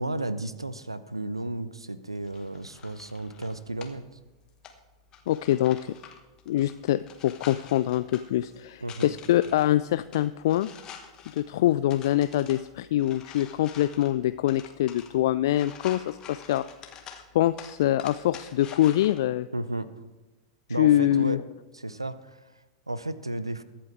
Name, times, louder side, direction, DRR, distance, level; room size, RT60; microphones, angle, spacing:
voice 1, 0.0-4.0 8.8-9.1 19.5-19.9 20.7-21.4 21.7-22.4 22.9-23.6, right 2 dB, 85° right, 15 dB, 0.7 m, -33 dB
sound 1, 2.2-19.2, left 7 dB, 30° left, 1.6 m, -48 dB
voice 2, 5.3-5.9 6.5-10.7 11.3-16.7 17.3-19.5 20.8-21.4, left 13 dB, 55° left, 13 dB, 0.3 m, -24 dB
22.5 x 8.6 x 3.5 m, 1.1 s
figure-of-eight pair, 95°, 3 cm